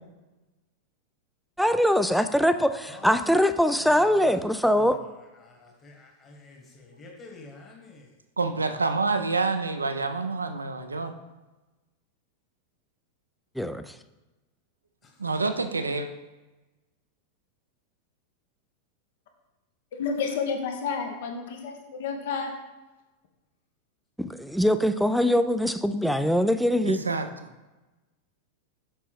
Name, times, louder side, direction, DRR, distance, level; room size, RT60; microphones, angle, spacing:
voice 1, 1.6-5.0 13.6-13.9 24.2-27.0, equal, ahead, 0.3 m, -22 dB
voice 2, 5.4-8.0, left 2 dB, 25° left, 1.6 m, -48 dB
voice 3, 8.4-11.1 15.2-16.1 26.8-27.5, right 3 dB, 80° right, 0.4 m, -27 dB
voice 4, 19.9-22.5, left 5 dB, 55° left, 0.9 m, -30 dB
7.3 x 5.4 x 3.3 m
figure-of-eight pair, 90°, 0 cm